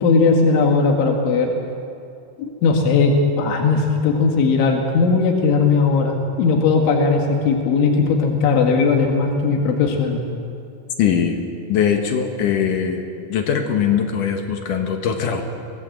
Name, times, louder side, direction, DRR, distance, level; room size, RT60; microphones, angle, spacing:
voice 1, 0.0-1.5 2.4-10.2, left 4 dB, 85° left, 2 dB, 4.2 m, -18 dB
voice 2, 11.0-11.4 11.7-13.0 13.3-15.4, left 8 dB, 60° left, 4 dB, 2.3 m, -21 dB
24.0 x 18.0 x 7.9 m, 2.6 s
omnidirectional pair, 5.3 m